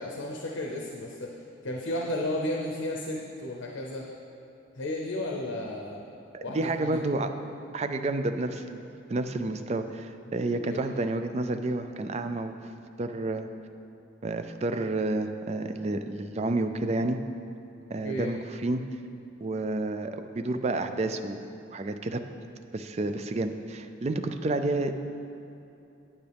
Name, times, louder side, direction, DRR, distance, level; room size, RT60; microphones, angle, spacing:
voice 1, 0.0-4.1 4.8-6.0 6.4-7.0 10.6-10.8 18.0-18.3, left 1 dB, 80° left, -1 dB, 0.7 m, -33 dB
voice 2, 6.3-7.3 7.7-8.8 9.1-12.6 13.0-13.5 14.2-17.2 17.9-18.8 19.4-21.4 21.7-22.2 22.7-24.9, right 2 dB, 35° right, 8 dB, 0.3 m, -30 dB
9.3 x 8.7 x 3.5 m, 2.8 s
head